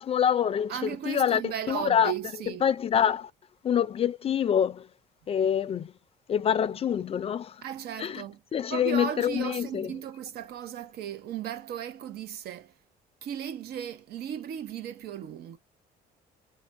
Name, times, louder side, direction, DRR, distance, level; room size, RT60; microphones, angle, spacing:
voice 1, 0.0-1.4 1.7-2.1 2.6-3.3 3.6-4.8 5.3-5.8 6.3-7.5 8.0-8.2 8.5-9.9, left 8 dB, 35° left, 0.4 m, -25 dB
voice 2, 0.7-2.6 7.6-8.4 8.7-12.7 13.2-15.6, right 9 dB, 70° right, 0.6 m, -36 dB
3.1 x 2.3 x 4.3 m
cardioid pair, 110°, 17 cm